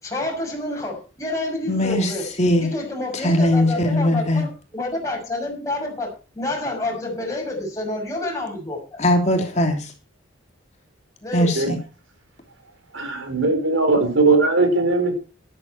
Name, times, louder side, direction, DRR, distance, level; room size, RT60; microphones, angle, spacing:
voice 1, 0.0-2.3 2.6-9.0 11.2-11.6, left 2 dB, 15° left, 6.2 m, -28 dB
voice 2, 1.7-2.7 3.1-4.5 9.0-9.9 11.3-11.8, left 1 dB, 35° left, 2.9 m, -20 dB
voice 3, 12.9-15.1, right 3 dB, 75° right, 4.5 m, -19 dB
13.0 x 12.5 x 4.5 m
head